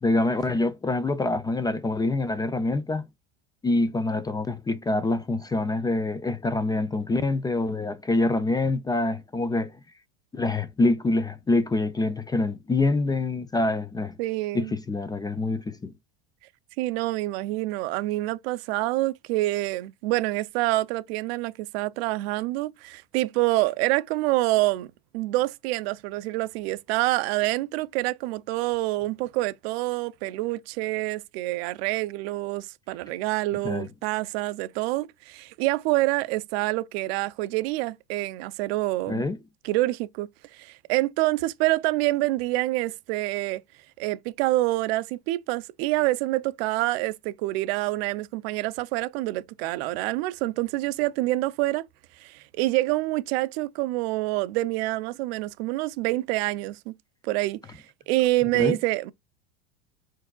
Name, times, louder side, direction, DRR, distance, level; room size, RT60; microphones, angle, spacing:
voice 1, 0.0-3.1 3.6-9.7 10.3-14.2 14.5-15.9 33.6-33.9 39.1-39.4 58.5-58.8, left 2 dB, 10° left, 0.4 m, -25 dB
voice 2, 14.2-14.7 16.8-39.2 39.6-43.6 44.0-51.8 52.2-57.0 57.2-59.1, right 18 dB, 65° right, 0.6 m, -27 dB
4.6 x 4.6 x 2.3 m
hypercardioid pair, 100°, 33 cm